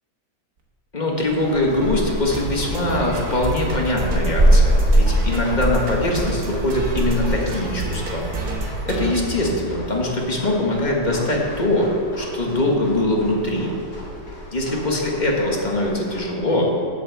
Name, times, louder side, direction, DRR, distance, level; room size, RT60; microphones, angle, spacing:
voice 1, 0.9-8.2 8.9-11.9 12.2-13.7 14.5-16.7, left 1 dB, 25° left, -1 dB, 1.5 m, -22 dB
sound 1, 1.2-16.4, equal, 70° left, 3.1 m, -38 dB
sound 2, 1.3-8.6, right 1 dB, 30° right, 2.4 m, -22 dB
sound 3, 1.5-10.1, right 2 dB, 60° right, 1.7 m, -30 dB
8.3 x 7.4 x 7.0 m, 2.9 s
omnidirectional pair, 1.9 m